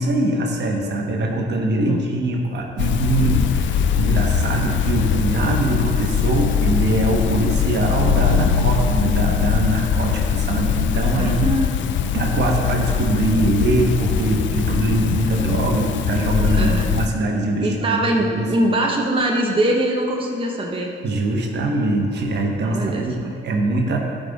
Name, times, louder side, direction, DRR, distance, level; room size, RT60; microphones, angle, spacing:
voice 1, 0.0-11.5 12.1-18.5 21.0-24.0, right 2 dB, 60° right, 1 dB, 1.3 m, -22 dB
sound 1, 2.8-17.1, left 8 dB, 70° left, 0.5 m, -21 dB
voice 2, 11.2-11.7 16.5-16.9 17.6-20.9 22.6-23.3, right 1 dB, 25° right, -1 dB, 1.0 m, -22 dB
12.5 x 5.2 x 4.1 m, 2.4 s
cardioid pair, 90°, 20 cm